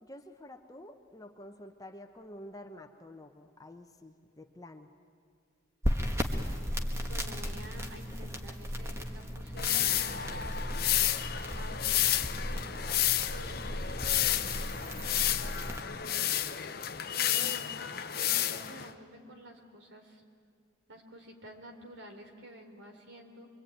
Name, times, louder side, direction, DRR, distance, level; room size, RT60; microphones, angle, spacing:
voice 1, 0.0-4.9 16.0-16.4, left 1 dB, 15° left, 5 dB, 1.0 m, -49 dB
sound 1, 5.8-15.8, equal, 15° right, 1.5 m, -36 dB
voice 2, 7.0-10.6 11.5-12.7 13.3-15.7 17.1-20.2 20.9-23.5, equal, 65° right, 4 dB, 3.6 m, -50 dB
sound 2, 9.6-18.9, left 11 dB, 45° left, 0.8 m, -31 dB
25.5 x 23.5 x 9.2 m, 2.1 s
head